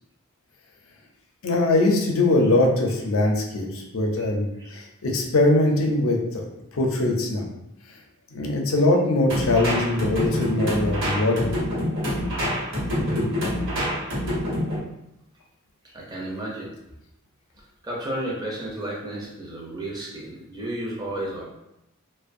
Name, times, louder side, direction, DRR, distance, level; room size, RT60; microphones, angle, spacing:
voice 1, 1.4-6.5 6.7-7.5 8.3-11.5, left 2 dB, 70° left, 1 dB, 0.5 m, -22 dB
sound 1, 9.3-14.8, equal, 55° right, 0.9 m, -26 dB
voice 2, 15.8-16.7 17.8-21.5, right 1 dB, 20° right, -4 dB, 0.5 m, -33 dB
2.5 x 2.1 x 2.5 m, 0.87 s
head